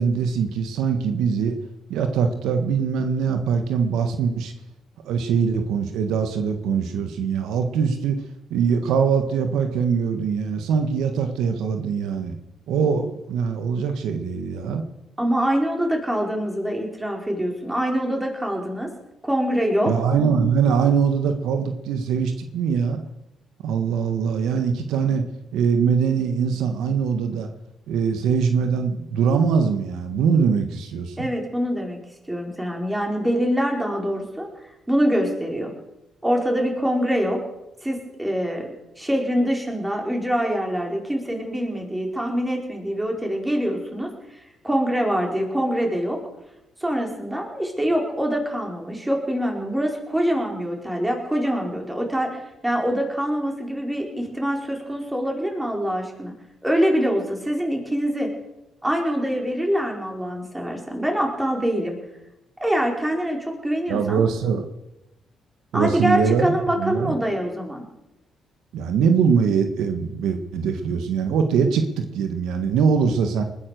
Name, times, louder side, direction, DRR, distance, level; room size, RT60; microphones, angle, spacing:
voice 1, 0.0-1.6 1.9-4.5 5.0-8.2 8.5-12.4 12.7-14.8 19.9-23.0 23.6-25.2 25.5-27.5 27.9-31.3 63.9-64.6 65.7-67.1 68.7-73.4, right 6 dB, 85° right, 7 dB, 1.6 m, -22 dB
voice 2, 15.2-18.9 19.2-19.9 31.2-32.0 32.3-34.5 34.9-35.7 36.2-37.4 37.8-38.7 39.0-46.2 46.8-56.3 56.6-58.3 58.8-61.9 62.6-64.2 65.7-67.8, equal, 10° right, 1 dB, 4.7 m, -24 dB
20.5 x 9.8 x 6.8 m, 0.92 s
cardioid pair, 90°, 0 cm